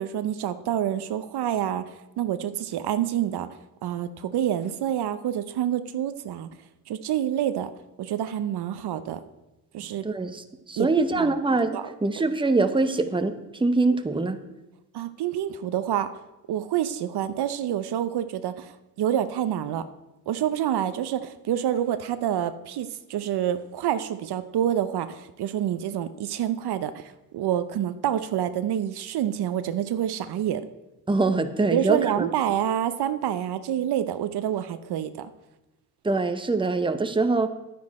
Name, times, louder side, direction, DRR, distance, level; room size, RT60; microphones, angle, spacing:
voice 1, 0.0-3.5 3.8-6.5 6.9-7.7 8.0-9.2 9.7-10.0 10.8-11.3 11.7-11.9 14.9-16.1 16.5-19.9 20.3-30.7 31.7-35.3, right 10 dB, 70° right, 11 dB, 0.7 m, -27 dB
voice 2, 10.0-13.3 13.6-14.4 31.1-32.3 36.0-37.5, right 3 dB, 10° right, 9 dB, 0.8 m, -24 dB
10.5 x 9.6 x 4.2 m, 1.0 s
cardioid pair, 75°, 40 cm